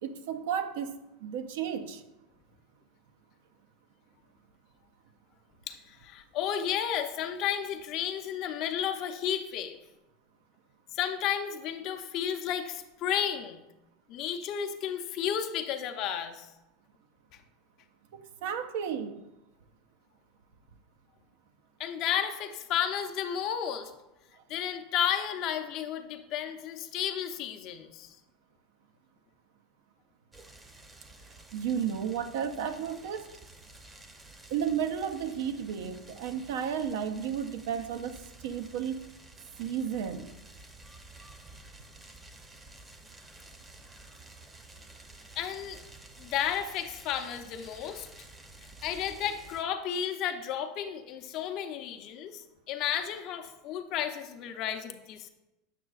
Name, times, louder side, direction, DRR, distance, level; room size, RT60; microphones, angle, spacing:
voice 1, 0.0-1.0 1.2-2.0 18.1-19.2 31.5-33.3 34.5-39.0 39.6-40.3, right 8 dB, 75° right, 8 dB, 0.5 m, -33 dB
voice 2, 5.7-9.8 10.9-13.6 14.1-16.5 21.8-23.9 24.5-28.2 45.4-45.8 46.2-48.1 48.8-55.3, left 9 dB, 55° left, 6 dB, 0.6 m, -32 dB
sound 1, 30.3-49.6, right 2 dB, 15° right, 0.7 m, -52 dB
7.6 x 6.0 x 2.4 m, 0.95 s
supercardioid pair, 115°, 0 cm